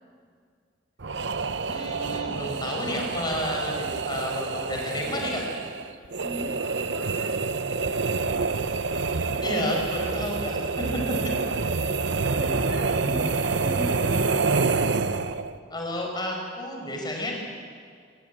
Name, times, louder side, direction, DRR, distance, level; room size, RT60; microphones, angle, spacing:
sound 1, 1.0-15.6, right 4 dB, 70° right, 0.8 m, -27 dB
voice 1, 1.7-5.4 9.4-10.6 10.9-11.0 11.4-11.5 15.7-17.3, left 1 dB, 20° left, 0 dB, 4.7 m, -31 dB
voice 2, 6.2-7.6 12.2-14.3, equal, 15° right, -5 dB, 2.8 m, -38 dB
23.0 x 16.5 x 9.3 m, 2.1 s
head